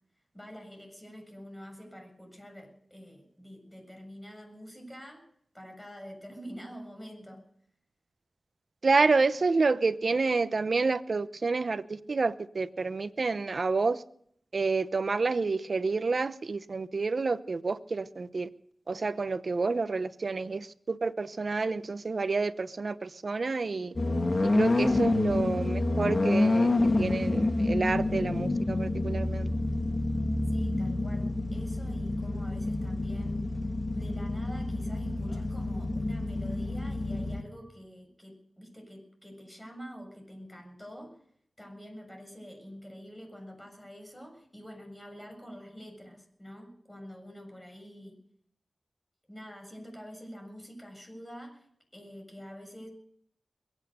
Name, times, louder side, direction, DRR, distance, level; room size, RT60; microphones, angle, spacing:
voice 1, 0.3-5.2 5.5-7.4 30.5-33.5 34.0-41.2 41.6-48.2 49.3-51.7 51.9-52.9, equal, 15° left, 3 dB, 7.3 m, -46 dB
voice 2, 8.8-14.0 14.5-18.5 18.9-23.9 24.5-29.5, right 4 dB, 65° right, 14 dB, 0.8 m, -29 dB
sound 1, 24.0-37.4, left 2 dB, 50° left, 1.9 m, -28 dB
22.5 x 9.1 x 6.8 m, 0.67 s
cardioid pair, 45°, 0 cm